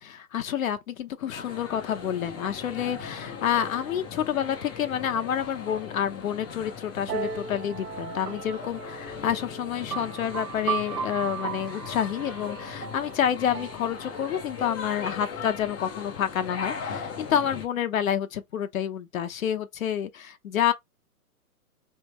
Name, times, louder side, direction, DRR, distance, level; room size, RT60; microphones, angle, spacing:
voice 1, 0.0-20.7, left 9 dB, 60° left, 0.9 m, -28 dB
sound 1, 1.3-17.7, left 6 dB, 15° left, 0.5 m, -39 dB
sound 2, 7.1-14.6, right 7 dB, 90° right, 0.9 m, -36 dB
3.9 x 3.4 x 2.9 m
hypercardioid pair, 140°, 45 cm